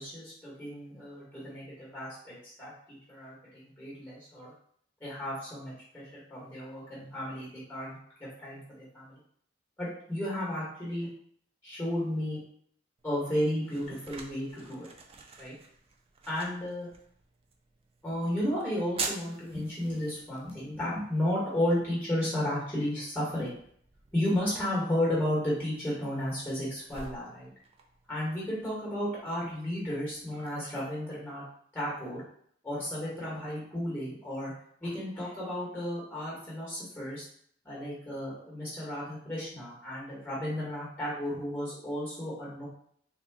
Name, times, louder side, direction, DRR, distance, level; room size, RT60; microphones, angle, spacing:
voice 1, 0.0-4.5 5.0-9.2 9.8-11.1 11.6-12.4 13.0-14.9 15.4-15.5 16.2-16.9 18.0-23.5 24.1-27.5 28.1-31.4 31.7-32.2 32.6-34.5 34.8-37.2 37.6-42.7, left 1 dB, 10° left, -7 dB, 1.3 m, -33 dB
sound 1, 13.0-30.5, right 4 dB, 30° right, 0.4 m, -47 dB
3.6 x 2.4 x 3.5 m, 0.64 s
head